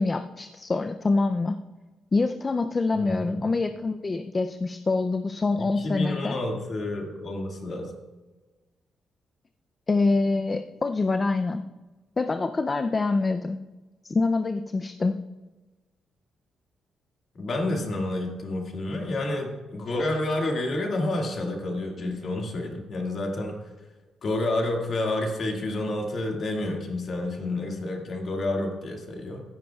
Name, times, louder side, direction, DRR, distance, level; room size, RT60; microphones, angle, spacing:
voice 1, 0.0-1.6 2.1-6.4 9.9-11.6 12.2-13.6 14.0-15.2, left 3 dB, 20° left, 7 dB, 0.4 m, -25 dB
voice 2, 3.0-3.5 5.6-7.9 17.3-23.6 24.2-29.4, left 2 dB, 40° left, 1 dB, 1.9 m, -29 dB
15.5 x 14.0 x 2.3 m, 1.2 s
cardioid pair, 175°, 0 cm